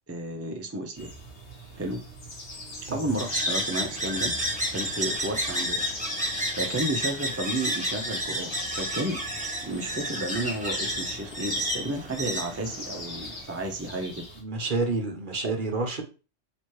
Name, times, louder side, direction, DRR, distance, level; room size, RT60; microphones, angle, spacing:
voice 1, 0.1-1.1 1.7-2.0 2.8-4.3 4.7-5.9 6.5-8.5 8.7-9.2 9.6-14.3, right 1 dB, 25° right, 2 dB, 0.3 m, -32 dB
sound 1, 0.9-14.4, left 1 dB, 60° left, 1.5 m, -39 dB
sound 2, 3.2-13.4, equal, 5° right, 0.8 m, -31 dB
voice 2, 14.4-16.0, right 3 dB, 45° right, 3 dB, 1.0 m, -29 dB
3.1 x 3.0 x 4.6 m, 0.33 s
omnidirectional pair, 1.3 m